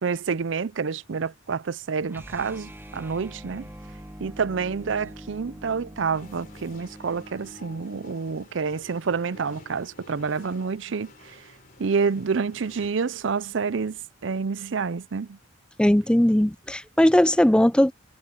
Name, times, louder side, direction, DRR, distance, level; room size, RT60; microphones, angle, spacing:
voice 1, 0.0-3.7 4.2-11.4 11.8-15.4, right 5 dB, 65° right, 0.5 m, -28 dB
sound 1, 2.1-8.2, equal, 10° right, 1.3 m, -44 dB
sound 2, 6.1-12.9, left 3 dB, 45° left, 3.4 m, -51 dB
voice 2, 15.8-17.9, equal, 5° left, 0.5 m, -19 dB
head